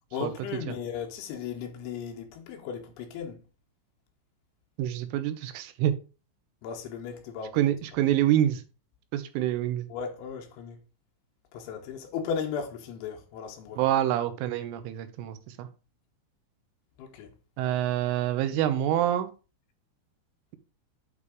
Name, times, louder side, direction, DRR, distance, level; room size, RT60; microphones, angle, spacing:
voice 1, 0.1-3.4 6.6-7.6 9.9-10.8 11.5-13.9 17.0-17.3, left 7 dB, 80° left, 3.3 m, -36 dB
voice 2, 4.8-5.9 7.5-8.6 9.1-9.9 13.8-15.7 17.6-19.3, right 12 dB, 85° right, 3.3 m, -26 dB
8.3 x 3.4 x 5.1 m
omnidirectional pair, 5.6 m